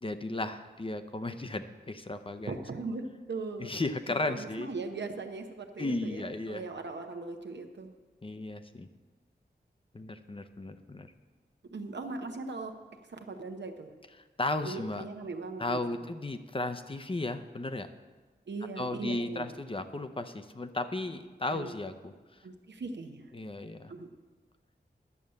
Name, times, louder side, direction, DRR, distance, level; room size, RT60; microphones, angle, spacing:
voice 1, 0.0-2.5 3.6-4.7 5.8-6.6 8.2-8.9 9.9-11.1 14.4-15.0 15.6-17.9 18.8-22.1 23.3-23.9, left 2 dB, 30° left, 9 dB, 0.7 m, -35 dB
voice 2, 2.5-3.7 4.3-7.9 11.6-12.8 13.1-13.9 14.6-16.1 18.5-19.5 21.5-21.7 22.4-23.3 23.9-24.1, right 3 dB, 85° right, 5 dB, 0.9 m, -39 dB
11.0 x 7.1 x 6.5 m, 1.3 s
wide cardioid pair, 65°, 18 cm